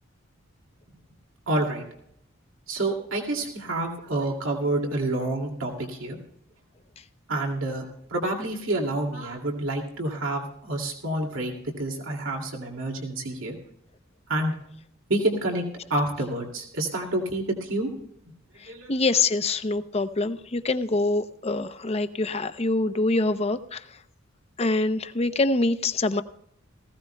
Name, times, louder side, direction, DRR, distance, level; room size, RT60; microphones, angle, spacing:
voice 1, 1.5-1.8 2.7-6.2 7.3-13.5 14.3-14.5 15.1-15.6 15.9-17.9 18.3-18.4 18.7-18.9, right 2 dB, 85° right, 1 dB, 2.4 m, -28 dB
voice 2, 18.9-23.8 24.6-26.2, left 2 dB, 30° left, 11 dB, 0.6 m, -25 dB
18.5 x 16.0 x 2.2 m, 0.75 s
head